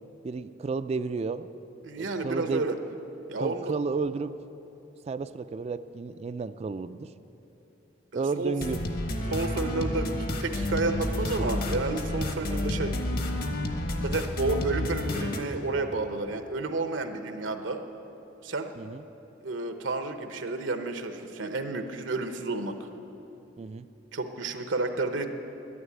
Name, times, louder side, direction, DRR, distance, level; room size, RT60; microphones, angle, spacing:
voice 1, 0.2-1.5 2.0-2.7 3.4-4.3 5.0-7.1 8.1-8.8 18.8-19.0 23.6-23.9, right 4 dB, 35° right, 12 dB, 0.3 m, -32 dB
voice 2, 1.8-2.7 3.3-3.7 8.1-8.5 9.3-10.1 10.4-12.9 14.0-17.8 18.4-18.7 19.4-22.9 24.1-25.3, right 3 dB, 80° right, 7 dB, 0.9 m, -31 dB
sound 1, 8.6-15.4, left 1 dB, 50° left, 1.2 m, -30 dB
11.0 x 10.0 x 9.6 m, 3.0 s
head